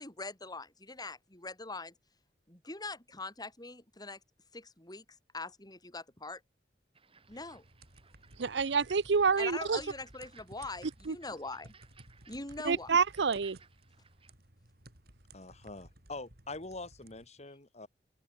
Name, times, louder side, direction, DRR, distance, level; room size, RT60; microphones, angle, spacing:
voice 1, 0.0-1.9 2.5-4.2 4.5-5.0 5.3-6.4 7.3-7.6 9.4-11.7 12.3-12.9, left 3 dB, 25° left, 7.3 m, -42 dB
sound 1, 6.9-14.3, right 5 dB, 35° right, 6.4 m, -62 dB
sound 2, 7.2-17.3, right 2 dB, 60° right, 5.6 m, -57 dB
voice 2, 8.4-9.8 11.1-11.2 12.7-13.6, right 5 dB, 80° right, 0.6 m, -27 dB
voice 3, 15.3-17.9, left 3 dB, 40° left, 3.7 m, -44 dB
open air
head